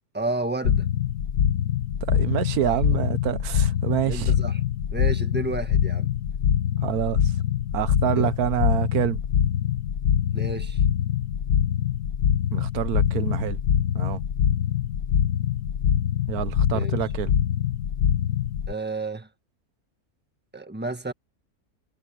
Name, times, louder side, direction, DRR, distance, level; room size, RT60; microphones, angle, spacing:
voice 1, 0.1-0.9 2.6-2.8 4.0-4.6 4.9-6.1 8.2-8.3 10.3-10.8 16.7-17.0 18.7-19.3 20.5-21.1, right 2 dB, 5° right, 1.4 m, -31 dB
sound 1, 0.6-18.7, left 9 dB, 70° left, 1.4 m, -24 dB
voice 2, 2.0-4.3 6.8-7.2 7.7-9.2 12.5-13.6 13.9-14.2 16.3-17.3, right 11 dB, 90° right, 1.3 m, -27 dB
omnidirectional pair, 1.6 m